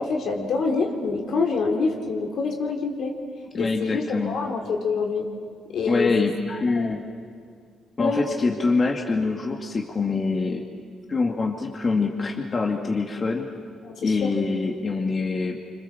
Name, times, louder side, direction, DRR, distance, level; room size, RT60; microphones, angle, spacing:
voice 1, 0.0-3.2 3.5-5.3 5.7-6.1 6.8-7.0 8.0-8.2 13.8-14.3, left 4 dB, 70° left, 1 dB, 3.7 m, -26 dB
voice 2, 3.5-4.4 5.9-7.0 8.0-10.7 11.1-13.5 14.0-15.6, left 4 dB, 35° left, 1 dB, 2.3 m, -25 dB
27.0 x 26.0 x 7.3 m, 2.1 s
cardioid pair, 90°, 0 cm